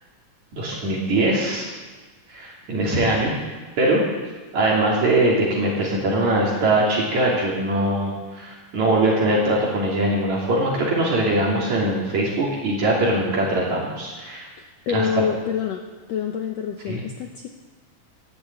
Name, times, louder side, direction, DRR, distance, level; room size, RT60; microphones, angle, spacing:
voice 1, 0.5-1.7 2.3-3.3 3.8-4.0 4.5-14.5 14.9-15.2 16.9-17.0, right 1 dB, 60° right, -4 dB, 4.1 m, -22 dB
voice 2, 14.9-15.8 16.1-17.5, left 7 dB, 70° left, 3 dB, 1.8 m, -26 dB
14.0 x 11.0 x 9.1 m, 1.4 s
omnidirectional pair, 3.8 m